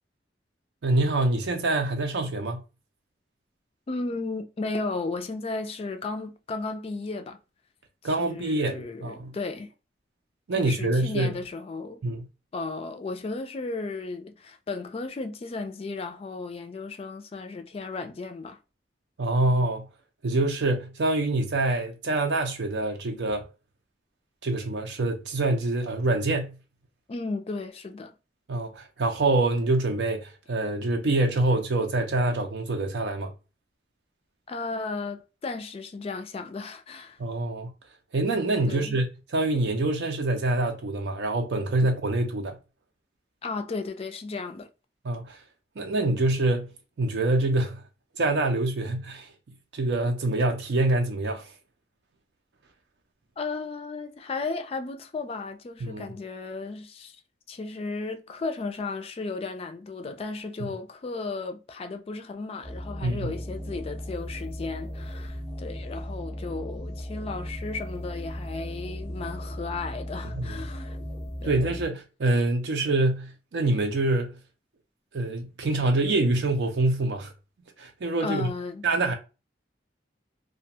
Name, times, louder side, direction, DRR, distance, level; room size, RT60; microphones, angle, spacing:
voice 1, 0.8-2.6 8.0-9.4 10.5-11.3 12.0-12.3 19.2-19.9 20.2-23.5 24.4-26.6 28.5-33.3 37.2-37.7 38.1-42.6 45.0-45.4 45.8-46.7 47.0-47.8 48.2-49.3 49.7-51.5 55.8-56.1 60.6-60.7 63.0-63.4 70.4-70.6 71.4-74.4 75.1-77.3 77.8-78.5 78.8-79.1, right 2 dB, 75° right, 0.5 m, -25 dB
voice 2, 3.9-7.4 8.2-9.7 10.5-12.0 12.5-18.6 27.1-28.2 34.5-37.2 38.7-39.0 43.4-44.7 53.4-57.2 57.5-71.0 71.4-71.6 78.2-78.8, left 3 dB, 35° left, 0.3 m, -34 dB
sound 1, 62.6-71.9, equal, 5° right, 0.7 m, -36 dB
2.4 x 2.2 x 2.7 m
head